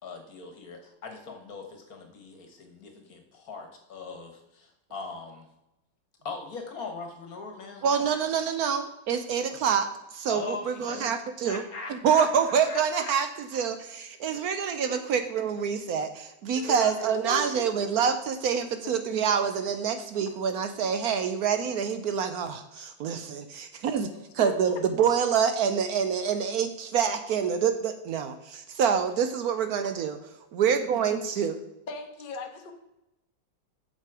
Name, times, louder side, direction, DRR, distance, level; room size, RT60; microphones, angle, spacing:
voice 1, 0.0-5.5 6.2-7.8 9.5-9.6 10.3-11.0 11.4-12.3 12.6-13.1 14.3-14.5 14.9-15.0 16.5-17.6, left 3 dB, 50° left, 4 dB, 1.6 m, -40 dB
voice 2, 7.8-11.6 11.9-30.2 30.5-31.6, right 7 dB, 70° right, 9 dB, 0.9 m, -27 dB
voice 3, 24.0-24.5 31.9-32.7, left 3 dB, 35° left, 4 dB, 0.8 m, -39 dB
7.4 x 6.7 x 4.8 m, 0.91 s
omnidirectional pair, 2.1 m